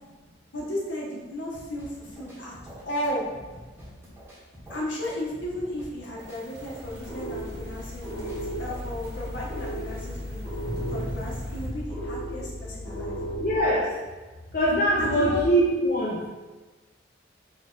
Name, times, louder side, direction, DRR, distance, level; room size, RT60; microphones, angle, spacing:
voice 1, 0.5-2.6 2.8-3.3 4.7-10.4 10.9-13.2 15.0-15.4, left 1 dB, 75° left, -4 dB, 1.0 m, -34 dB
sound 1, 1.5-9.5, equal, 10° right, 0.9 m, -47 dB
sound 2, 6.2-11.7, equal, 60° right, 0.7 m, -41 dB
sound 3, 6.8-13.6, equal, 20° left, 1.4 m, -35 dB
voice 2, 13.4-13.9 14.5-16.2, right 1 dB, 45° left, -6 dB, 0.6 m, -22 dB
4.3 x 2.4 x 3.8 m, 1.3 s
head